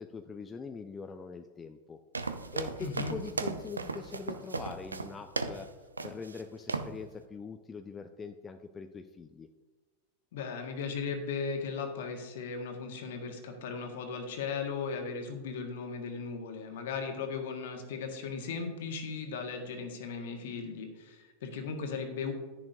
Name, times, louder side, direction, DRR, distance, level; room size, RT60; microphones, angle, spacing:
voice 1, 0.0-2.0 2.3-5.7 6.0-9.5, left 5 dB, 20° left, 7 dB, 0.4 m, -43 dB
sound 1, 2.1-5.7 6.0-6.4 6.7-7.0, right 3 dB, 75° right, 0.6 m, -36 dB
voice 2, 2.8-3.1 10.3-22.3, left 5 dB, 55° left, 4 dB, 1.6 m, -37 dB
10.5 x 10.5 x 2.7 m, 1.3 s
figure-of-eight pair, 90°, 0 cm